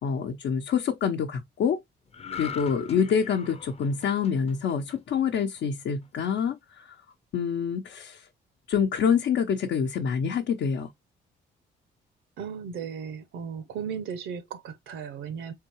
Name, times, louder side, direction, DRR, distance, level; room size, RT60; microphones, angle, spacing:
voice 1, 0.0-1.8 2.4-7.0 7.3-8.2 8.7-10.9, left 7 dB, 70° left, 0.8 m, -26 dB
sound 1, 2.1-5.6 6.0-6.3, left 7 dB, 30° left, 0.7 m, -41 dB
voice 2, 12.4-15.5, right 7 dB, 80° right, 0.7 m, -36 dB
4.6 x 3.7 x 2.9 m
cardioid pair, 90°, 20 cm